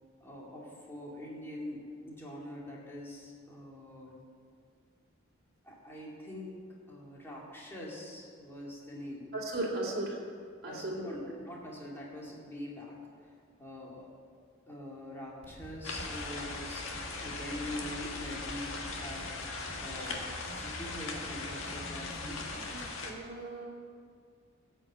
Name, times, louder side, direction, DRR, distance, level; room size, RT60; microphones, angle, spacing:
voice 1, 0.2-4.2 5.6-6.6 6.9-9.3 10.7-13.0 13.6-14.1 14.7-16.9 17.2-19.5 19.8-22.4, left 1 dB, 10° left, -4 dB, 2.3 m, -44 dB
voice 2, 9.3-10.2 10.6-11.2 23.0-23.6, right 2 dB, 50° right, -4 dB, 2.6 m, -36 dB
Fireworks, 15.4-22.9, right 1 dB, 35° right, 3.8 m, -48 dB
sound 1, 15.8-23.1, left 3 dB, 75° left, 1.5 m, -39 dB
14.5 x 5.6 x 8.7 m, 2.2 s
head